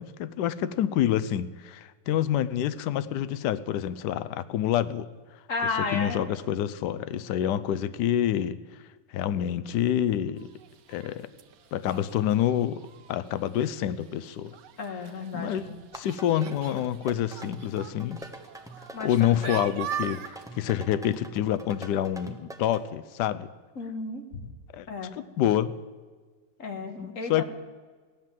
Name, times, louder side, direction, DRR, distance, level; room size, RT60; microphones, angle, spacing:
voice 1, 0.0-5.1 5.9-8.6 9.1-10.5 10.9-11.3 11.7-14.5 15.3-18.2 19.0-23.5 24.7-24.9 25.1-25.8 27.0-27.4, left 11 dB, 75° left, 14 dB, 1.2 m, -27 dB
voice 2, 5.5-6.3 14.8-15.7 18.9-19.6 23.8-24.2 24.9-25.1 26.6-27.4, left 4 dB, 50° left, 5 dB, 1.7 m, -33 dB
sound 1, 10.4-20.6, right 9 dB, 75° right, 1.4 m, -42 dB
sound 2, 15.8-22.8, right 1 dB, 5° right, 0.8 m, -44 dB
16.0 x 11.0 x 7.5 m, 1.4 s
omnidirectional pair, 1.9 m